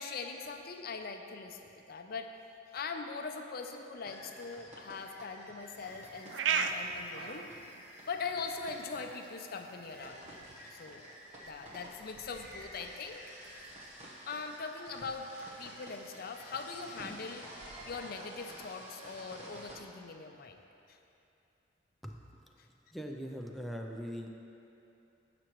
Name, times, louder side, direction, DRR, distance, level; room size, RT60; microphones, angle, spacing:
voice 1, 0.0-2.3 2.7-7.5 8.1-11.0 11.4-13.2 14.3-15.3 15.6-17.5 17.8-20.6 20.9-21.0 22.6-22.7, left 4 dB, 55° left, 5 dB, 0.5 m, -41 dB
sound 1, 4.0-19.8, equal, 40° right, 1.1 m, -51 dB
sound 2, 5.6-19.7, right 6 dB, 80° right, 0.4 m, -43 dB
voice 2, 22.9-24.3, equal, ahead, 0 dB, 0.5 m, -40 dB
15.0 x 6.0 x 3.0 m, 2.8 s
head